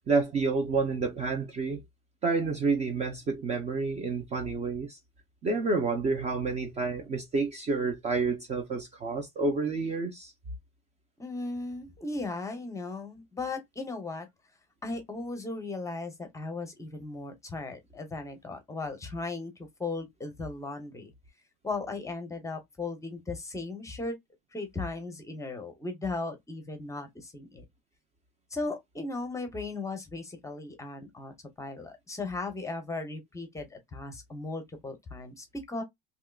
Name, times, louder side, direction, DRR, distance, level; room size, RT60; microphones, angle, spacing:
voice 1, 0.1-1.8 2.2-5.0 5.4-10.3, right 4 dB, 20° right, 0.5 m, -29 dB
voice 2, 11.2-14.3 14.8-19.5 19.8-21.1 21.6-24.2 24.5-27.6 28.5-35.8, left 3 dB, 10° left, 0.7 m, -37 dB
3.5 x 2.8 x 2.3 m
cardioid pair, 160°, 29 cm